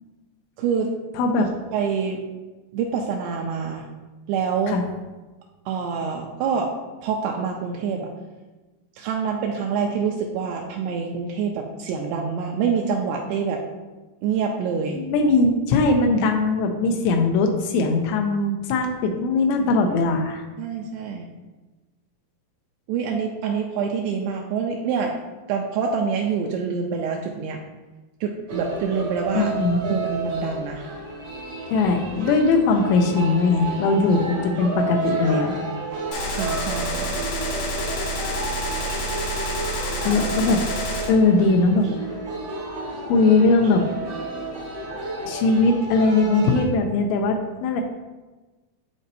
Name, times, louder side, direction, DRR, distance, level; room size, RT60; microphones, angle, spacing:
voice 1, 0.6-0.9 1.3-1.4 1.7-2.2 2.7-3.9 4.3-4.8 5.7-6.7 7.0-8.1 9.0-13.6 14.2-15.0 20.6-21.3 22.9-25.2 25.5-27.6 28.2-29.5 29.8-30.8 36.3-37.1, right 6 dB, 80° right, 1 dB, 2.5 m, -26 dB
voice 2, 1.2-1.5 4.7-4.8 15.0-20.4 29.4-29.8 31.7-35.6 40.0-40.6 41.1-41.9 43.0-43.8 45.3-47.8, left 3 dB, 85° left, 3 dB, 2.9 m, -20 dB
sound 1, 28.5-46.6, right 3 dB, 65° right, 1.2 m, -31 dB
Gunshot gunfire, 36.1-41.1, left 1 dB, 65° left, 1.6 m, -28 dB
12.0 x 4.1 x 2.7 m, 1.2 s
omnidirectional pair, 5.1 m